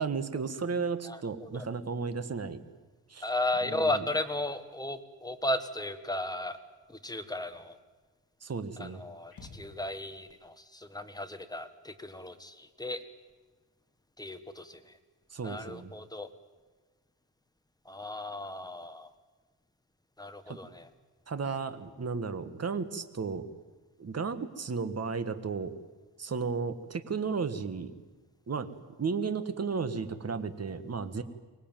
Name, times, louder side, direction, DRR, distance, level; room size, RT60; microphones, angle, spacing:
voice 1, 0.0-2.6 3.1-3.3 3.7-4.1 8.4-9.0 15.3-15.9 20.5-20.6 21.3-23.5 24.0-25.7 26.2-27.9 28.5-28.7 29.0-31.2, right 5 dB, 35° right, 11 dB, 1.5 m, -34 dB
voice 2, 1.0-1.6 3.2-6.6 6.9-7.8 8.8-13.0 14.2-14.8 15.4-16.3 17.8-19.1 20.2-20.9, left 1 dB, 10° left, 9 dB, 1.5 m, -35 dB
sound 1, 9.3-10.3, left 3 dB, 55° left, 3.0 m, -51 dB
24.5 x 19.0 x 9.1 m, 1.3 s
wide cardioid pair, 140°, 42 cm